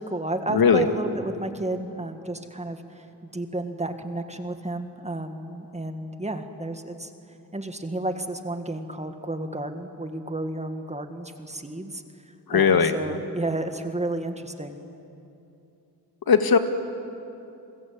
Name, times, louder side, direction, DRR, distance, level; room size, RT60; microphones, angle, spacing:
voice 1, 0.0-7.1 7.5-12.0 12.5-14.8, right 2 dB, 15° right, 7 dB, 2.0 m, -32 dB
voice 2, 0.5-0.9 12.5-12.9 16.3-16.6, left 6 dB, 65° left, 7 dB, 2.0 m, -18 dB
29.5 x 21.0 x 8.9 m, 2.8 s
cardioid pair, 90°, 39 cm